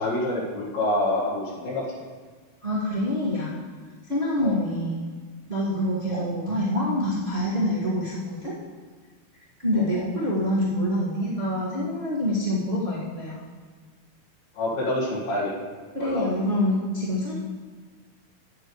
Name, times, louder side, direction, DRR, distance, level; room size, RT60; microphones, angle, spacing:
voice 1, 0.0-2.0 4.4-4.6 6.1-6.2 9.7-10.0 14.5-15.5 16.0-16.4, left 1 dB, 80° left, -7 dB, 3.7 m, -27 dB
voice 2, 2.6-3.5 4.1-5.0 5.5-8.5 9.6-13.4 15.9-17.3, left 1 dB, 35° right, -9 dB, 0.9 m, -26 dB
9.9 x 9.7 x 3.2 m, 1.5 s
omnidirectional pair, 4.2 m